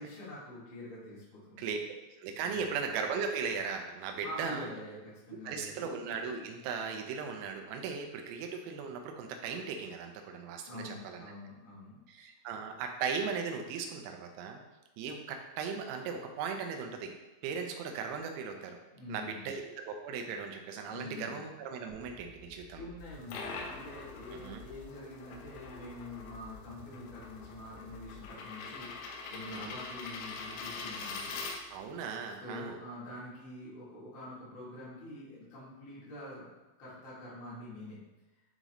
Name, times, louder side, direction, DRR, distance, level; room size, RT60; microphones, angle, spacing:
voice 1, 0.0-1.6 2.3-2.7 4.2-5.9 10.6-12.0 18.9-19.5 20.9-21.4 22.7-31.3 32.4-36.5 36.8-38.0, left 1 dB, 40° left, -8 dB, 1.8 m, -46 dB
voice 2, 2.2-4.7 5.4-11.2 12.1-14.6 15.0-17.1 17.4-18.8 19.1-22.8 24.3-24.6 29.5-29.8 31.7-32.8, right 5 dB, 90° right, 3 dB, 3.5 m, -37 dB
sound 1, 21.9-24.9 25.3-28.3, left 4 dB, 75° right, 3.7 m, -54 dB
sound 2, 23.0-32.0, left 4 dB, 80° left, 3.2 m, -44 dB
11.0 x 4.0 x 3.1 m, 1.1 s
omnidirectional pair, 5.9 m